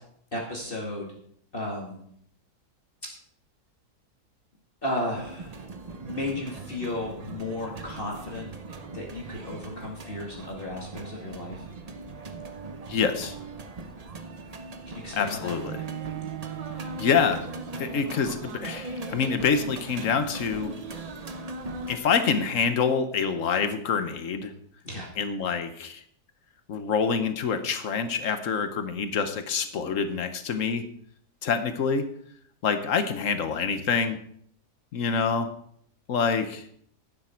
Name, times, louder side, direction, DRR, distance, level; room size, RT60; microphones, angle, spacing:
voice 1, 0.3-1.1 1.5-2.0 4.8-5.6 5.9-8.5 8.9-11.6 14.9-15.5 24.8-25.1, left 1 dB, 35° left, -2 dB, 2.2 m, -34 dB
sound 1, 5.1-22.0, right 2 dB, 35° right, 0.6 m, -39 dB
voice 2, 12.9-13.4 15.1-15.8 17.0-17.4 17.8-20.7 21.9-24.5 25.2-26.0 26.7-30.8 31.4-32.1 32.6-34.2 34.9-35.5 36.1-36.6, left 6 dB, 55° left, 10 dB, 1.3 m, -26 dB
Bowed string instrument, 15.6-18.5, right 15 dB, 75° right, 1.3 m, -39 dB
11.5 x 9.5 x 4.5 m, 0.65 s
omnidirectional pair, 1.7 m